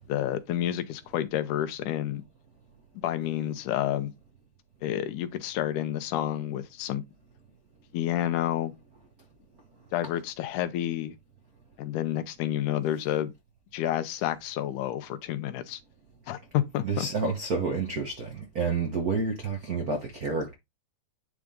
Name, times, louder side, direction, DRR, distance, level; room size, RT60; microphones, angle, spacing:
voice 1, 0.1-2.2 3.0-4.1 4.8-7.0 7.9-8.7 9.9-11.2 11.8-13.3 13.7-15.8 16.3-17.1, left 12 dB, 80° left, 2.3 m, -29 dB
voice 2, 16.8-20.5, right 4 dB, 75° right, 0.8 m, -29 dB
9.8 x 3.6 x 3.8 m
omnidirectional pair, 3.6 m